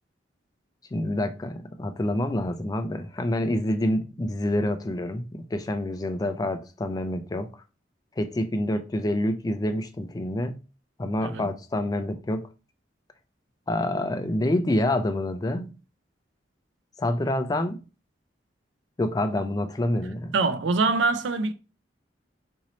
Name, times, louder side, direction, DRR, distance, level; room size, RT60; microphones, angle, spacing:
voice 1, 0.9-7.5 8.2-10.5 11.0-12.4 13.7-15.7 17.0-17.8 19.0-20.3, left 1 dB, 20° left, 0.3 m, -27 dB
voice 2, 20.3-21.5, right 3 dB, 80° right, 0.4 m, -24 dB
3.0 x 2.7 x 4.0 m
head